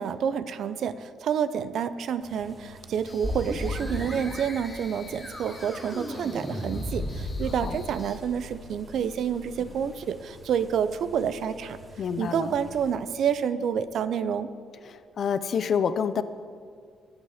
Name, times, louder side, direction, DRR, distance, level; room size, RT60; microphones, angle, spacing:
voice 1, 0.0-11.8 12.2-14.5, right 8 dB, 70° right, 13 dB, 0.6 m, -29 dB
sound 1, 2.2-12.9, right 1 dB, 30° right, 3.1 m, -50 dB
sound 2, 3.0-8.2, left 3 dB, 35° left, 1.9 m, -51 dB
sound 3, 3.2-12.8, left 1 dB, 5° right, 3.0 m, -37 dB
voice 2, 12.0-12.5 14.9-16.2, left 7 dB, 55° left, 13 dB, 0.6 m, -28 dB
20.0 x 8.2 x 5.0 m, 2.2 s
cardioid pair, 90°, 0 cm